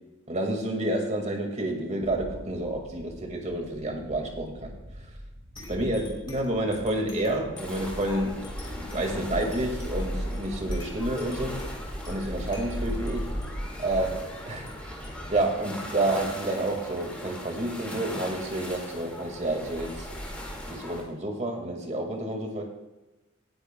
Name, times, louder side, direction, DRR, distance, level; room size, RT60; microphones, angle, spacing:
voice 1, 0.3-4.7 5.7-8.4 8.8-11.7 12.1-13.4 13.8-15.0 15.3-20.1 20.7-22.6, right 1 dB, 35° right, 2 dB, 1.9 m, -29 dB
sound 1, 2.0-15.5, equal, 85° right, 2.1 m, -45 dB
sound 2, 5.6-16.6, left 2 dB, 20° left, 3.1 m, -49 dB
sound 3, 7.6-21.0, equal, 5° left, 2.0 m, -36 dB
18.0 x 9.9 x 2.2 m, 1.1 s
head